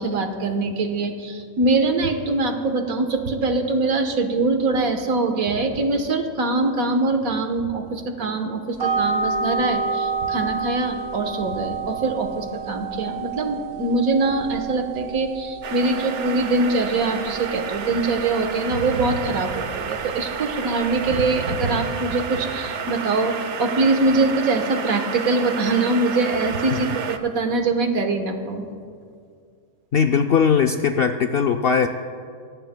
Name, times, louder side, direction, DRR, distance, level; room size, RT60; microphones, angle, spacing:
voice 1, 0.0-28.7, right 3 dB, 75° right, 5 dB, 1.6 m, -23 dB
sound 1, 8.8-21.1, right 5 dB, 40° right, 1.5 m, -30 dB
sound 2, 15.6-27.2, right 6 dB, 60° right, 1.0 m, -31 dB
voice 2, 29.9-31.9, left 6 dB, 65° left, 5 dB, 0.6 m, -19 dB
22.0 x 17.5 x 2.2 m, 2.2 s
omnidirectional pair, 1.5 m